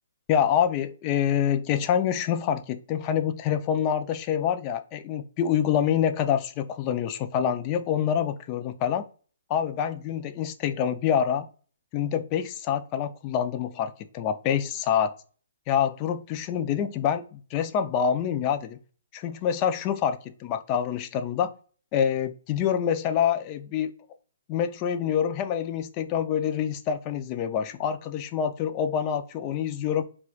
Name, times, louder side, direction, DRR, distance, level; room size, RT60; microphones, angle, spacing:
voice 1, 0.3-9.0 9.5-11.5 11.9-15.1 15.7-18.8 19.1-21.5 21.9-23.9 24.5-30.1, left 8 dB, 30° left, 10 dB, 0.3 m, -26 dB
4.3 x 2.2 x 2.3 m, 0.40 s
hypercardioid pair, 150°, 0 cm